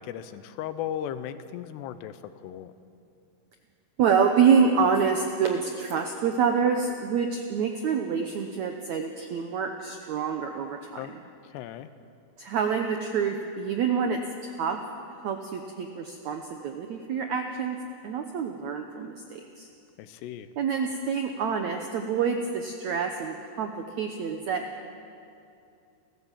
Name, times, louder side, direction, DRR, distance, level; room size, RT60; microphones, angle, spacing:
voice 1, 0.0-2.7 11.0-11.1 11.4-11.9 20.0-20.5, left 10 dB, 90° left, 12 dB, 3.0 m, -36 dB
voice 2, 4.0-11.2 12.4-14.8 15.2-17.8 18.0-19.7 20.6-24.6, right 6 dB, 80° right, 5 dB, 1.6 m, -27 dB
29.5 x 14.5 x 7.5 m, 2.6 s
omnidirectional pair, 4.7 m